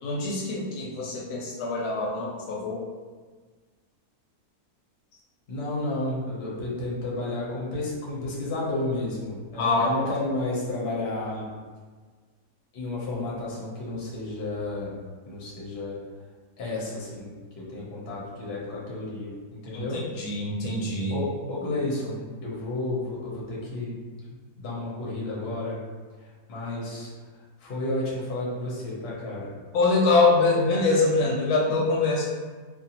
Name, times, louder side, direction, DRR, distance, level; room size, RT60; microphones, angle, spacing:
voice 1, 0.0-2.8 9.6-9.9 19.7-19.8 20.2-21.2 29.7-32.3, left 3 dB, 80° left, -3 dB, 1.1 m, -24 dB
voice 2, 5.5-11.5 12.7-15.0 15.2-16.0 16.6-20.0 21.1-24.0 24.3-25.8 26.2-29.6, left 2 dB, 50° left, -5 dB, 0.9 m, -32 dB
2.5 x 2.5 x 2.8 m, 1.4 s
omnidirectional pair, 1.7 m